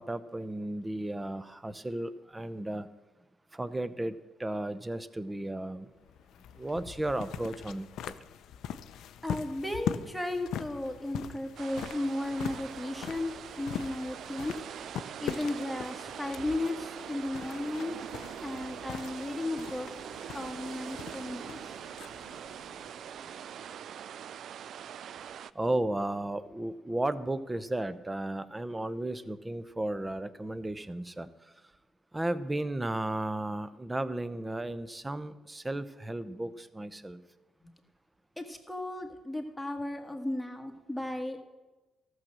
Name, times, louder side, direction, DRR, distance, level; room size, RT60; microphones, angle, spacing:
voice 1, 0.0-2.9 3.5-5.9 6.5-8.1 25.5-31.7 32.1-37.2, right 1 dB, 15° right, 14 dB, 0.7 m, -34 dB
sound 1, 6.0-23.6, left 9 dB, 80° left, 0.5 m, -42 dB
voice 2, 9.2-14.6 15.2-18.0 18.4-19.9 20.3-21.8 37.6-37.7 38.4-41.4, left 1 dB, ahead, 3 dB, 1.6 m, -35 dB
sound 2, 11.6-25.5, right 9 dB, 65° right, 0.3 m, -43 dB
13.5 x 6.4 x 7.4 m, 1.1 s
cardioid pair, 90°, 0 cm